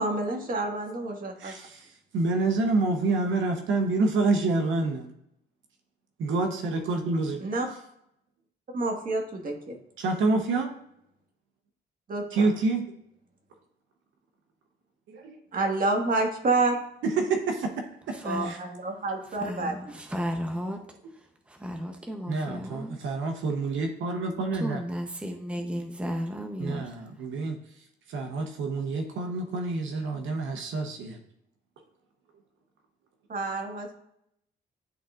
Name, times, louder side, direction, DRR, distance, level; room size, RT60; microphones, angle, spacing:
voice 1, 0.0-1.5 7.4-7.7 8.7-9.7 12.1-12.5 15.5-16.8 18.2-20.0 33.3-33.9, right 2 dB, 45° right, 1.6 m, -28 dB
voice 2, 1.4-5.1 6.2-7.4 10.0-10.7 12.3-12.8 15.1-15.4 17.0-18.2 18.4-18.6 22.3-24.8 26.6-27.6 28.1-31.2, right 3 dB, 75° right, 0.9 m, -27 dB
voice 3, 18.1-18.5 19.3-20.8 21.1-23.1 24.5-27.0, equal, 5° right, 0.7 m, -34 dB
10.5 x 3.8 x 2.5 m
cardioid pair, 90°, 20 cm